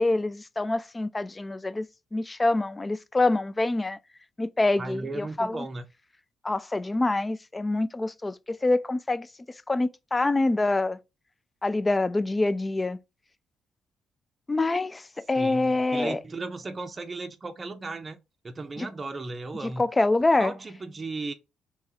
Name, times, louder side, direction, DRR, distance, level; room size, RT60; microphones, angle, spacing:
voice 1, 0.0-4.0 4.4-5.7 6.4-9.3 9.7-11.0 11.6-13.0 14.5-16.2 18.8-18.9 19.6-20.5, left 2 dB, 20° left, 0.3 m, -26 dB
voice 2, 4.8-5.8 15.4-18.2 18.4-19.8 20.4-21.3, right 3 dB, 30° right, 0.5 m, -35 dB
3.5 x 2.9 x 2.7 m
cardioid pair, 90°, 0 cm